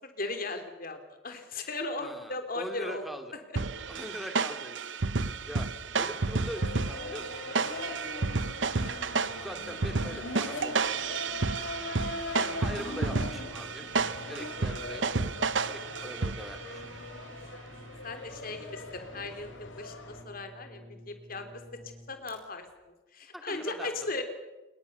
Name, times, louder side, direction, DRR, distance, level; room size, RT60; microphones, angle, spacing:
voice 1, 0.0-3.0 8.8-9.0 12.4-12.6 18.0-21.6 22.1-22.6 23.1-24.2, left 2 dB, 45° left, 7 dB, 3.3 m, -37 dB
voice 2, 2.0-3.3 3.9-4.9 5.5-5.7 6.0-7.3 9.2-11.0 12.5-13.8 14.3-15.0 15.7-16.9 18.5-18.8 23.3-23.9, equal, ahead, 6 dB, 2.4 m, -42 dB
sound 1, 3.6-16.7, right 4 dB, 65° right, 0.9 m, -31 dB
sound 2, 6.0-20.2, left 2 dB, 75° left, 3.8 m, -41 dB
Brass instrument, 13.0-22.4, equal, 30° right, 4.8 m, -51 dB
27.5 x 21.5 x 6.8 m, 1.1 s
head